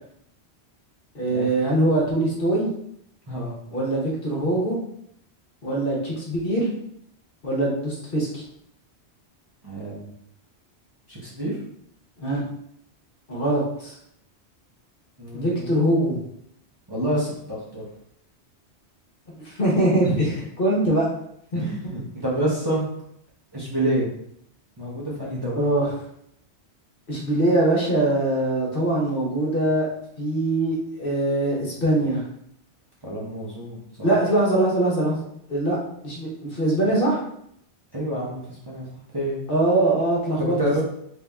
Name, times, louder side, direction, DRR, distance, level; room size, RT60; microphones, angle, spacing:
voice 1, 1.1-2.7 3.7-4.8 5.6-6.7 7.4-8.4 12.2-12.4 13.3-13.9 15.3-16.2 19.4-21.1 21.5-21.6 25.6-25.9 27.1-29.9 30.2-32.2 34.0-35.2 35.5-35.8 36.0-37.2 39.5-40.6, right 1 dB, 55° left, -3 dB, 1.2 m, -22 dB
voice 2, 3.3-3.6 9.6-10.1 11.1-11.6 15.2-15.6 16.9-17.9 20.0-20.1 21.5-22.8 23.5-24.1 24.8-25.6 33.0-34.1 37.9-38.9 39.1-39.4 40.6-40.8, right 1 dB, 25° right, -6 dB, 0.9 m, -28 dB
3.6 x 2.8 x 3.5 m, 0.71 s
omnidirectional pair, 1.1 m